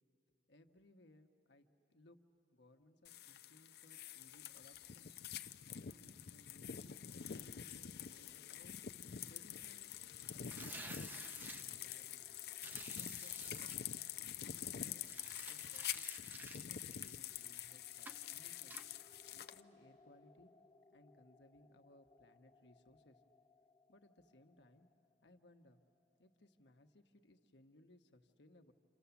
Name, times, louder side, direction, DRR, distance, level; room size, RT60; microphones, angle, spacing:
voice 1, 0.5-2.2 2.5-5.1 5.7-8.7 9.3-9.9 10.3-12.3 12.9-15.0 15.5-18.8 19.3-20.5 20.9-23.2 23.9-24.9 25.2-25.8 26.2-28.7, left 1 dB, 80° left, 6 dB, 1.1 m, -66 dB
sound 1, 3.0-19.6, left 10 dB, 60° left, 0.5 m, -47 dB
sound 2, 9.9-26.5, left 3 dB, 25° left, 1.1 m, -71 dB
sound 3, 10.4-11.6 12.6-13.8 15.0-17.6 18.1-18.3 18.7-18.9, right 2 dB, 10° right, 0.6 m, -52 dB
28.5 x 27.5 x 7.0 m, 2.8 s
head